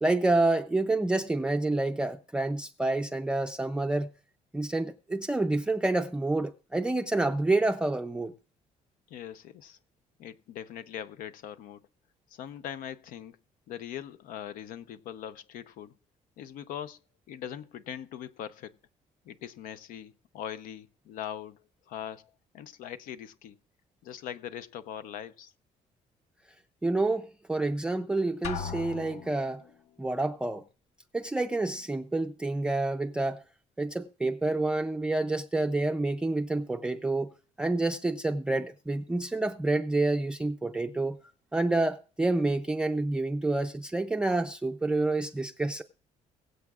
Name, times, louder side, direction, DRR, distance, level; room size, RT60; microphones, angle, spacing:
voice 1, 0.0-4.1 4.5-8.3 26.8-29.6 30.0-30.6 31.1-33.4 33.8-37.3 37.6-41.2 41.5-45.8, right 2 dB, 5° right, 0.4 m, -28 dB
voice 2, 9.1-9.8 10.2-11.8 12.3-13.4 13.7-15.9 16.4-17.0 17.3-18.7 19.3-23.6 24.0-25.5, left 10 dB, 80° left, 0.7 m, -41 dB
Drum, 28.4-29.6, left 6 dB, 55° left, 0.8 m, -37 dB
22.5 x 7.9 x 2.4 m
cardioid pair, 175°, 14 cm